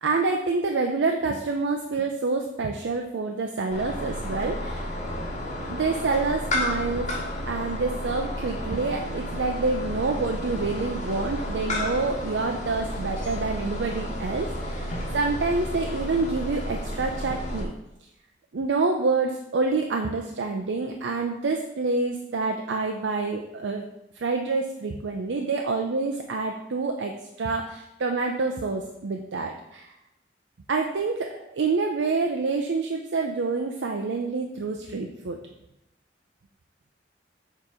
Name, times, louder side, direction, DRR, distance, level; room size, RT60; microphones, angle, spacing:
voice 1, 0.0-5.0 5.7-17.7 18.5-23.8 24.2-29.9 30.7-35.4, right 3 dB, 90° right, 3 dB, 0.5 m, -27 dB
sound 1, 3.7-17.6, left 1 dB, 40° left, 1.1 m, -32 dB
6.7 x 3.0 x 4.9 m, 0.89 s
head